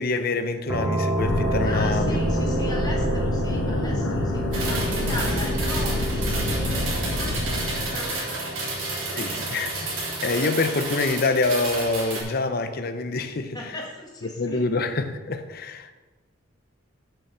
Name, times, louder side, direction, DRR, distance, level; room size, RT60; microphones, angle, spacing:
voice 1, 0.0-2.2 9.1-13.6 14.4-15.9, left 3 dB, 50° left, 0.7 m, -26 dB
sound 1, 0.7-10.2, right 1 dB, 20° right, 1.1 m, -30 dB
sound 2, 1.2-8.2, left 1 dB, 85° left, 1.1 m, -27 dB
voice 2, 1.6-9.2 13.5-14.7, left 1 dB, 20° left, 1.7 m, -38 dB
sound 3, 4.5-12.2, right 2 dB, 75° right, 3.1 m, -31 dB
7.0 x 6.1 x 6.7 m
head